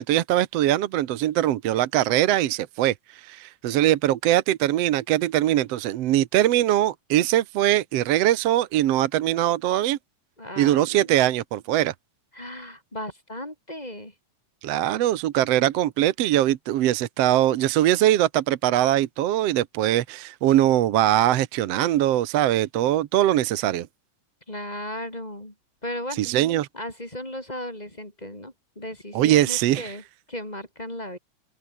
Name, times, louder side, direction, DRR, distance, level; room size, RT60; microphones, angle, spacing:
voice 1, 0.0-10.0 10.6-11.9 14.6-23.9 26.2-26.7 29.1-29.9, right 13 dB, 65° right, 1.8 m, -22 dB
voice 2, 10.4-11.3 12.3-14.1 24.5-25.5 25.8-26.2 26.7-31.2, left 1 dB, 15° left, 3.6 m, -36 dB
omnidirectional pair, 3.5 m